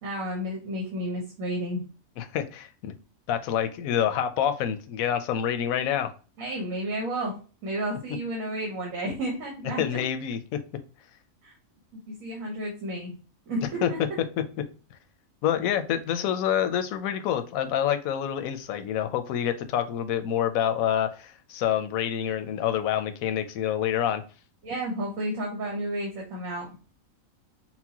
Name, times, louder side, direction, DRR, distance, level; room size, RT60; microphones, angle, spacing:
voice 1, 0.0-1.8 6.4-7.4 7.6-10.0 11.4-11.5 11.9-13.1 13.5-14.2 24.6-26.7, right 1 dB, 75° right, -1 dB, 1.5 m, -32 dB
voice 2, 2.2-2.9 3.3-6.1 9.8-10.6 13.8-13.9 15.4-24.2, left 9 dB, 85° left, 8 dB, 1.0 m, -27 dB
5.8 x 2.1 x 2.8 m, 0.36 s
omnidirectional pair, 1.4 m